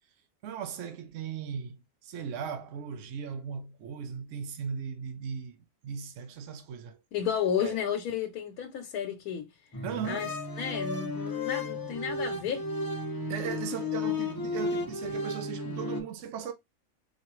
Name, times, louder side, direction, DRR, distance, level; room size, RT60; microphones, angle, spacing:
voice 1, 0.4-5.6 5.8-7.0 7.6-7.8 9.8-10.4 13.3-16.5, right 7 dB, 65° right, 0.9 m, -37 dB
voice 2, 7.1-9.5 10.0-12.7, left 8 dB, 85° left, 1.2 m, -32 dB
sound 1, 9.7-16.0, left 2 dB, 25° left, 0.4 m, -33 dB
4.2 x 3.0 x 3.0 m
omnidirectional pair, 1.5 m